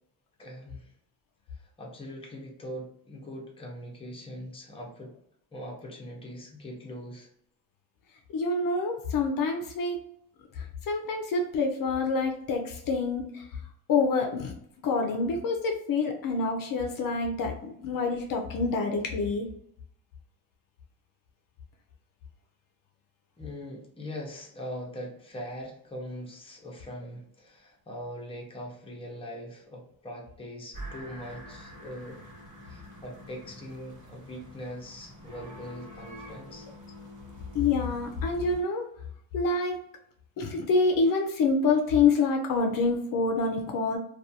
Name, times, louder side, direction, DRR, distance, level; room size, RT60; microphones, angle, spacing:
voice 1, 0.4-0.9 1.5-5.2 5.5-7.3 23.4-32.2 32.6-36.7, equal, 15° left, -1 dB, 0.6 m, -41 dB
voice 2, 8.3-10.0 10.6-13.4 13.9-14.5 14.8-19.5 37.5-38.8 39.3-39.8 40.4-44.0, left 4 dB, 60° left, 3 dB, 0.5 m, -27 dB
sound 1, 30.7-38.6, equal, 40° right, 1.3 m, -46 dB
2.4 x 2.3 x 2.7 m, 0.72 s
cardioid pair, 150°, 38 cm